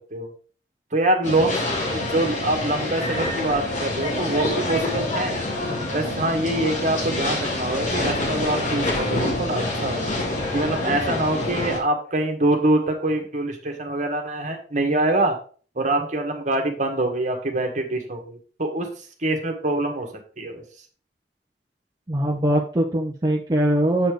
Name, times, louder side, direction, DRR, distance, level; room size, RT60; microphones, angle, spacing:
voice 1, 0.9-1.5 1.9-5.4 5.9-10.1 10.5-15.3 15.7-18.9 19.2-20.1 20.4-20.6, right 2 dB, 45° right, 4 dB, 1.7 m, -24 dB
sound 1, 1.2-11.8, left 2 dB, 45° left, 2.3 m, -26 dB
voice 2, 22.1-24.1, right 1 dB, 25° right, -2 dB, 0.8 m, -21 dB
8.0 x 4.4 x 4.9 m, 0.40 s
head